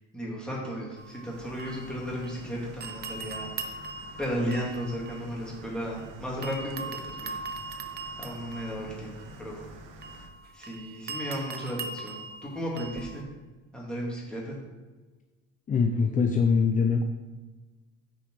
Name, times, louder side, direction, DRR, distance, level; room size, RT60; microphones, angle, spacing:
voice 1, 0.1-3.5 4.2-7.4 8.2-9.7 10.5-13.2 13.7-14.6, equal, 5° left, -5 dB, 2.9 m, -34 dB
sound 1, 1.0-2.5 2.8-6.0 6.4-13.2, right 4 dB, 30° right, 0.8 m, -41 dB
sound 2, 1.3-10.3, right 1 dB, 75° right, 1.3 m, -48 dB
voice 2, 15.7-17.0, left 5 dB, 25° left, 5 dB, 0.6 m, -23 dB
9.0 x 5.3 x 5.0 m, 1.3 s
cardioid pair, 120°, 32 cm